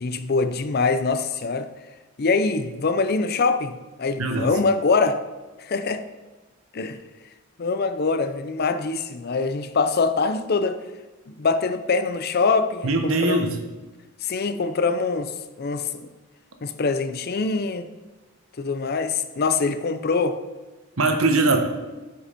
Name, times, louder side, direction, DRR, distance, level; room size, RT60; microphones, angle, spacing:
voice 1, 0.0-1.7 2.2-5.2 5.6-6.0 6.7-7.0 7.6-10.8 11.3-13.5 14.2-16.1 16.6-17.9 18.6-20.4, left 4 dB, 45° left, 10 dB, 0.5 m, -24 dB
voice 2, 12.8-13.6 21.0-21.6, right 2 dB, 70° right, 5 dB, 1.0 m, -21 dB
8.5 x 5.5 x 5.1 m, 1.2 s
head